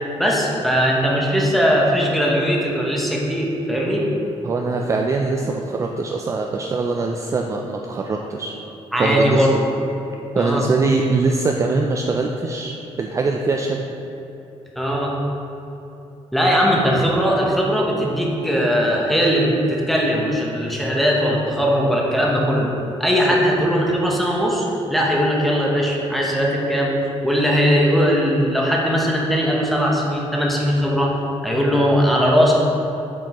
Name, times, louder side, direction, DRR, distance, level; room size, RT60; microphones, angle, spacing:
voice 1, 0.2-4.0 8.9-9.7 10.4-10.6 14.8-15.1 16.3-22.7 23.0-27.0 27.2-31.1 31.4-32.5, equal, ahead, -3 dB, 0.9 m, -19 dB
voice 2, 4.4-8.5 9.0-9.5 10.3-13.8, right 3 dB, 25° right, 1 dB, 0.3 m, -22 dB
7.2 x 5.1 x 2.9 m, 3.0 s
cardioid pair, 135°, 12 cm